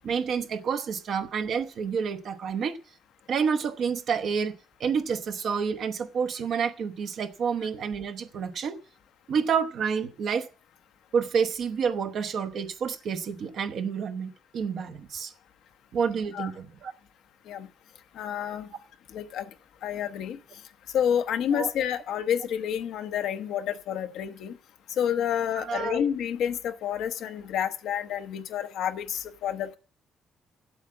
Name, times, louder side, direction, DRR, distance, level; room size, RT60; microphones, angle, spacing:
voice 1, 0.0-2.8 3.3-8.8 9.3-10.5 11.1-15.3 15.9-16.9 21.5-21.7 25.6-26.0, right 6 dB, 65° right, 1.0 m, -29 dB
voice 2, 18.2-18.7 19.1-19.5 19.8-20.4 20.9-24.6 25.0-29.8, left 9 dB, 80° left, 0.8 m, -29 dB
8.1 x 7.5 x 8.3 m
cardioid pair, 90°, 0 cm